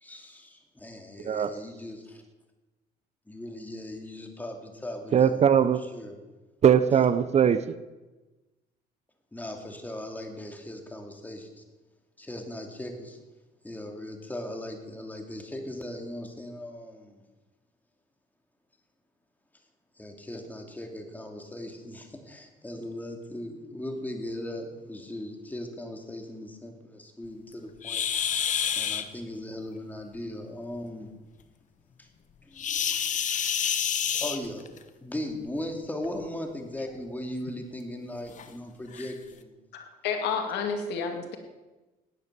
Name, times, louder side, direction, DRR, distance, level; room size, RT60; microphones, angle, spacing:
voice 1, 0.0-2.2 3.3-5.5 5.9-6.2 6.9-7.0 9.3-11.6 12.2-13.2 13.6-17.2 20.0-28.0 28.7-31.1 32.0-32.1 32.4-33.0 34.2-34.7 35.0-39.5, left 1 dB, 10° left, 3 dB, 2.7 m, -38 dB
voice 2, 1.2-1.5 5.1-5.8 6.6-7.8, right 8 dB, 40° right, 14 dB, 0.7 m, -21 dB
sound 1, 27.8-29.0 32.6-34.8 36.0-36.2 36.8-36.9 37.5-37.6 38.4-38.5 38.9-39.1, left 8 dB, 45° left, 1.1 m, -28 dB
voice 3, 39.7-41.4, left 5 dB, 80° left, 5 dB, 2.4 m, -30 dB
17.5 x 9.7 x 6.8 m, 1.2 s
cardioid pair, 110°, 17 cm